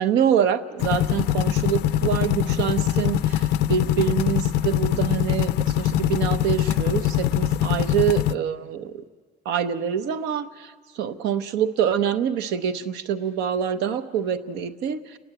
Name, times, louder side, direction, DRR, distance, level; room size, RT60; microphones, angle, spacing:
voice 1, 0.0-8.9 9.4-15.2, right 8 dB, 90° right, 9 dB, 0.9 m, -25 dB
sound 1, 0.8-8.3, left 12 dB, 80° left, 0.5 m, -23 dB
30.0 x 10.5 x 8.9 m, 1.6 s
cardioid pair, 110°, 17 cm